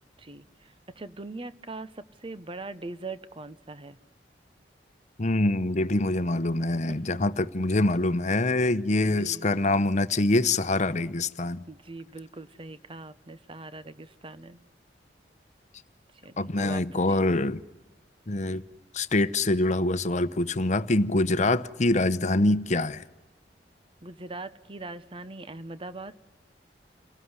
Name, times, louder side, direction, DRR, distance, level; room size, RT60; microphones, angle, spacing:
voice 1, 0.2-4.0 6.9-7.2 7.9-8.0 9.0-9.5 11.7-14.6 16.1-17.3 21.3-21.5 24.0-26.1, right 2 dB, 30° right, 1.0 m, -41 dB
voice 2, 5.2-11.6 16.4-17.6 18.3-18.6 18.9-23.0, left 2 dB, 45° left, 0.9 m, -25 dB
28.5 x 18.5 x 9.7 m
head